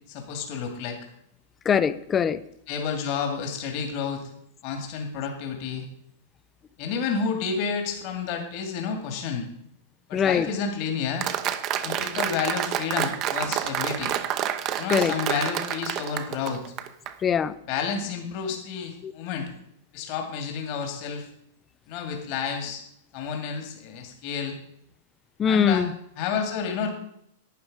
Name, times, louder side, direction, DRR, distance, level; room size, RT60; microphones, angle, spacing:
voice 1, 0.1-1.0 2.7-4.2 4.6-5.8 6.8-9.5 10.1-11.3 11.8-14.1 14.8-16.6 17.7-19.5 19.9-21.3 21.9-22.8 23.1-24.6 25.5-25.8 26.2-26.9, left 6 dB, 50° left, 4 dB, 2.5 m, -30 dB
voice 2, 1.7-2.4 10.1-10.5 14.9-15.1 17.2-17.5 19.0-19.1 25.4-25.9, left 7 dB, 25° left, 16 dB, 0.6 m, -22 dB
Applause, 11.2-17.1, right 11 dB, 40° right, 0.9 m, -28 dB
11.5 x 9.0 x 5.1 m, 0.75 s
hypercardioid pair, 125°, 0 cm